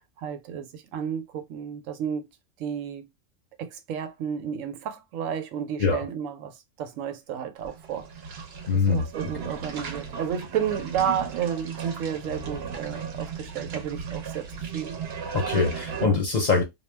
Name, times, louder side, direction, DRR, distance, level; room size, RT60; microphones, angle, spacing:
voice 1, 0.2-2.3 2.6-3.1 3.6-8.1 8.7-15.2 16.0-16.2, right 8 dB, 90° right, 1.0 m, -32 dB
sound 1, 7.6-16.1, right 6 dB, 60° right, 0.8 m, -36 dB
voice 2, 8.7-9.0 15.3-16.6, left 4 dB, 50° left, 0.6 m, -23 dB
2.3 x 2.1 x 3.2 m
omnidirectional pair, 1.3 m